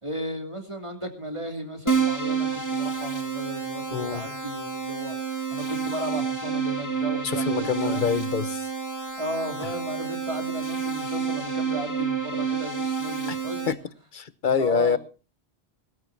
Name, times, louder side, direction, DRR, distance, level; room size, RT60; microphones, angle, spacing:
voice 1, 0.0-5.2 5.5-8.1 9.2-13.7 14.5-15.0, right 1 dB, 30° right, 3.0 m, -35 dB
Keyboard (musical), 1.9-13.7, right 5 dB, 15° left, 1.5 m, -29 dB
voice 2, 3.9-4.2 7.2-8.7 13.3-13.4 13.7-13.8 14.1-15.0, left 6 dB, 50° left, 1.1 m, -25 dB
21.5 x 14.0 x 2.7 m
omnidirectional pair, 1.1 m